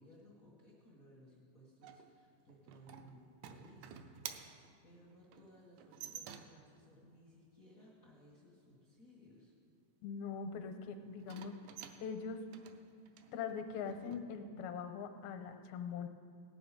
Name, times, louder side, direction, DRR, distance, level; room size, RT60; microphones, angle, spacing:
voice 1, 0.0-4.6 4.8-9.5, equal, 60° left, -4 dB, 0.8 m, -61 dB
sound 1, 1.8-6.8 11.2-14.2, right 9 dB, 80° right, 2.0 m, -51 dB
voice 2, 10.0-11.6 12.0-12.4 13.3-16.1, left 6 dB, 80° left, 7 dB, 2.6 m, -42 dB
18.0 x 9.0 x 5.0 m, 2.3 s
omnidirectional pair, 4.3 m